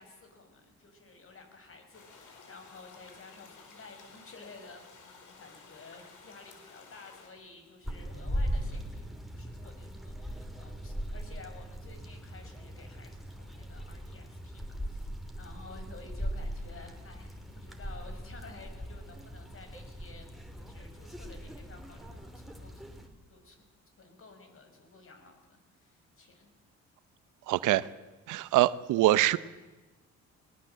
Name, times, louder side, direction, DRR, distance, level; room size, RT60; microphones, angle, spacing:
voice 1, 0.0-15.1 15.4-23.0 23.3-23.6 24.0-26.5, left 3 dB, 45° left, 6 dB, 5.4 m, -53 dB
sound 1, 1.9-7.3, left 4 dB, 80° left, 4.7 m, -54 dB
sound 2, 7.8-23.1, equal, ahead, 3.3 m, -39 dB
voice 2, 27.5-27.9 28.3-29.4, right 15 dB, 85° right, 17 dB, 0.8 m, -24 dB
20.5 x 19.5 x 7.7 m, 1.2 s
cardioid pair, 90°, 30 cm